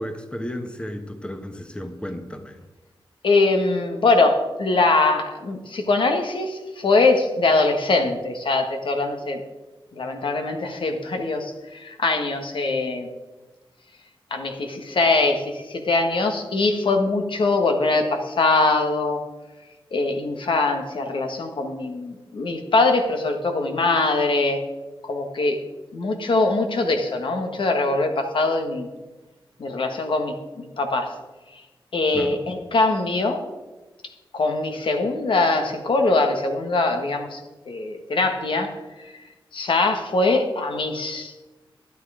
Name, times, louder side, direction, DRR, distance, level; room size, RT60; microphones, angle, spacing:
voice 1, 0.0-2.6 32.1-32.4, equal, 10° left, 7 dB, 1.2 m, -33 dB
voice 2, 3.2-9.4 9.9-13.1 14.3-19.2 19.9-24.6 25.0-25.6 25.9-28.9 29.6-31.1 31.5-31.6 31.9-33.5 34.3-37.4 37.7-39.2 39.5-41.3, left 3 dB, 65° left, 5 dB, 1.6 m, -22 dB
12.5 x 9.5 x 5.0 m, 1.2 s
cardioid pair, 70°, 9 cm